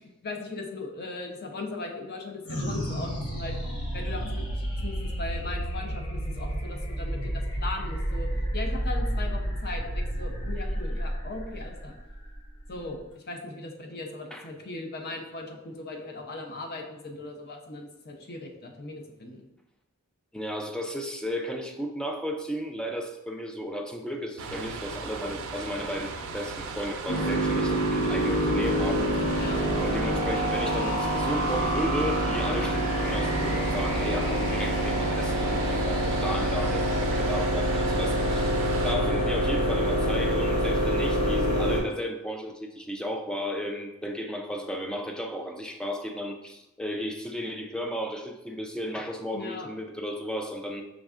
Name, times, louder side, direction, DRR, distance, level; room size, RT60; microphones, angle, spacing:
voice 1, 0.2-3.6 3.9-12.0 12.7-19.4 29.4-29.6 49.3-49.7, left 2 dB, 45° left, 3 dB, 0.6 m, -38 dB
sound 1, 2.5-13.1, equal, 75° left, 1.0 m, -31 dB
voice 2, 20.3-38.6 38.8-50.8, equal, 5° left, 4 dB, 0.3 m, -34 dB
sound 2, 24.4-38.9, right 4 dB, 65° right, 0.5 m, -37 dB
sound 3, 27.1-41.8, equal, 90° left, 1.3 m, -26 dB
5.2 x 3.5 x 2.4 m, 0.97 s
head